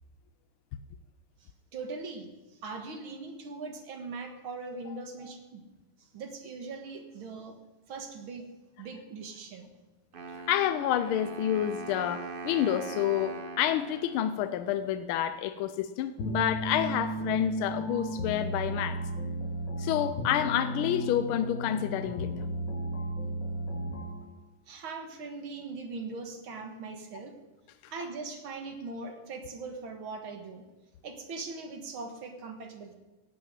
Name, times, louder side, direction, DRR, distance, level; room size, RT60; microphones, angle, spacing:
voice 1, 1.7-2.3 2.6-5.6 6.1-7.5 7.9-8.4 8.8-9.7 24.7-27.3 27.9-30.6 31.0-33.0, right 3 dB, 70° right, 5 dB, 2.3 m, -40 dB
Wind instrument woodwind instrument, 10.1-15.1, right 4 dB, 45° right, 0.6 m, -42 dB
voice 2, 10.5-19.0 19.8-22.3 27.8-27.9, left 11 dB, 80° left, 11 dB, 1.4 m, -29 dB
sound 1, 16.2-24.3, right 1 dB, 60° left, 1.6 m, -34 dB
16.5 x 6.0 x 9.1 m, 1.1 s
omnidirectional pair, 2.3 m